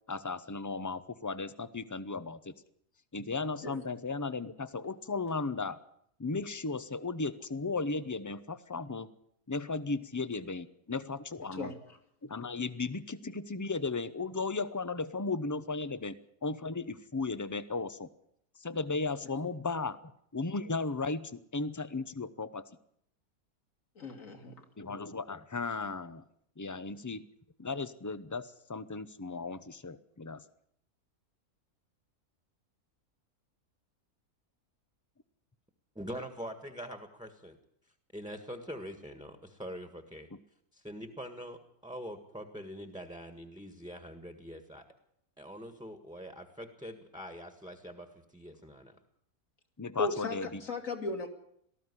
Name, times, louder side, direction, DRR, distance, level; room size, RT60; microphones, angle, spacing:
voice 1, 0.1-2.5 3.1-5.8 6.2-9.1 9.5-11.7 12.2-16.1 16.4-18.1 18.6-20.0 20.3-22.6 24.8-26.2 26.6-27.3 27.6-30.4 40.3-40.4 49.8-50.6, left 3 dB, 20° left, 14 dB, 0.5 m, -35 dB
voice 2, 24.0-24.5 50.0-51.3, left 3 dB, 60° left, 5 dB, 2.7 m, -36 dB
voice 3, 36.0-37.6 38.1-40.3 40.7-44.8 45.4-49.0, equal, 5° right, 7 dB, 1.5 m, -44 dB
18.5 x 14.0 x 9.8 m, 0.71 s
omnidirectional pair, 1.6 m